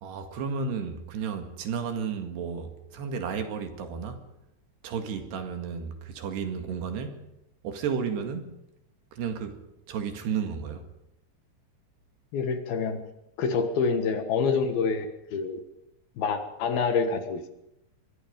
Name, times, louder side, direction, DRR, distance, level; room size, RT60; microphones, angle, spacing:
voice 1, 0.0-4.3 4.8-7.3 7.6-8.6 9.1-9.6 9.9-10.9, right 6 dB, 70° right, 3.9 m, -33 dB
voice 2, 12.3-13.0 13.4-15.6 16.2-17.5, left 5 dB, 65° left, 3.0 m, -27 dB
25.0 x 22.0 x 5.3 m
omnidirectional pair, 5.2 m